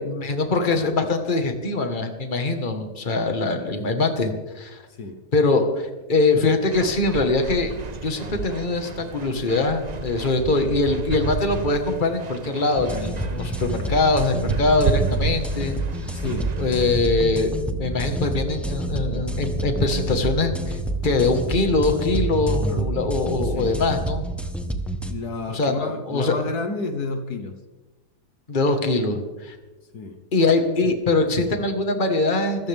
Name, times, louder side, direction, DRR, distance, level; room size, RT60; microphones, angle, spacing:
voice 1, 0.0-4.8 5.3-7.7 8.0-15.8 16.6-20.8 21.0-24.2 25.5-26.3 28.5-29.6 30.3-32.7, left 3 dB, 30° left, 5 dB, 1.8 m, -22 dB
sound 1, 6.7-17.0, right 5 dB, 50° right, 0.5 m, -32 dB
sound 2, 12.8-25.1, right 2 dB, ahead, 1.0 m, -28 dB
voice 2, 16.1-16.5 23.4-23.8 25.1-27.5 29.9-30.2, left 3 dB, 70° left, 6 dB, 1.7 m, -30 dB
26.0 x 14.5 x 3.6 m, 1.1 s
omnidirectional pair, 1.8 m